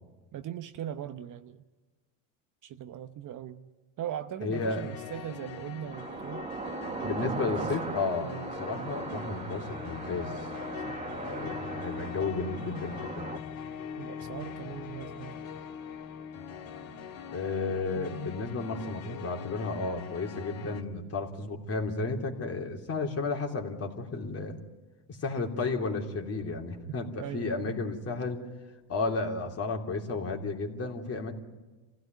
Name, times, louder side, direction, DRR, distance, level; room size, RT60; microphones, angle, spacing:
voice 1, 0.3-1.6 2.6-3.7 4.0-6.5 7.0-7.8 8.2-8.5 10.8-11.0 14.0-15.4 17.9-18.2 27.2-27.8, right 10 dB, 40° right, 9 dB, 1.0 m, -40 dB
voice 2, 4.4-4.8 7.0-8.3 8.6-10.5 11.1-13.4 17.3-24.6 25.2-28.4 28.9-31.3, left 3 dB, 30° left, 2 dB, 3.2 m, -33 dB
sound 1, 4.5-20.8, left 7 dB, 45° left, 2.2 m, -42 dB
sound 2, 5.9-13.4, right 4 dB, 15° right, 1.1 m, -39 dB
26.0 x 16.0 x 9.4 m, 1.2 s
supercardioid pair, 110°, 46 cm